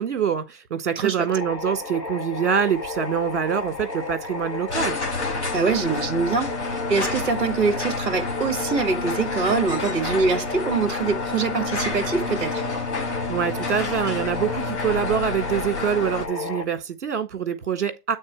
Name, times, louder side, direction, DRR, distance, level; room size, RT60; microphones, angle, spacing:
voice 1, 0.0-5.0 13.3-18.2, right 8 dB, 45° right, 1.6 m, -25 dB
voice 2, 1.0-1.3 5.5-12.6, right 4 dB, 30° right, 1.3 m, -24 dB
sound 1, 1.3-16.6, left 3 dB, 85° left, 2.1 m, -33 dB
sound 2, 2.6-16.3, left 3 dB, 45° left, 1.7 m, -30 dB
8.8 x 3.8 x 4.5 m
figure-of-eight pair, 155°, 49 cm